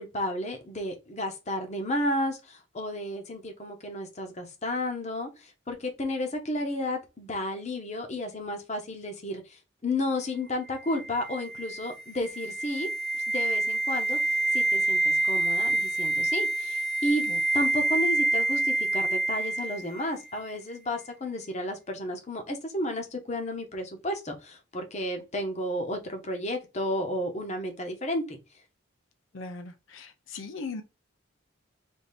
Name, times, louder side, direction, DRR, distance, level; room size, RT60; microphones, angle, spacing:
voice 1, 0.0-12.9 13.3-14.2 14.5-17.2 17.5-28.4, left 1 dB, 35° left, 0.9 m, -32 dB
sound 1, 10.8-20.1 20.4-20.5, right 2 dB, 5° right, 1.0 m, -27 dB
voice 2, 29.3-30.8, left 4 dB, 70° left, 0.6 m, -39 dB
3.6 x 2.8 x 4.0 m
head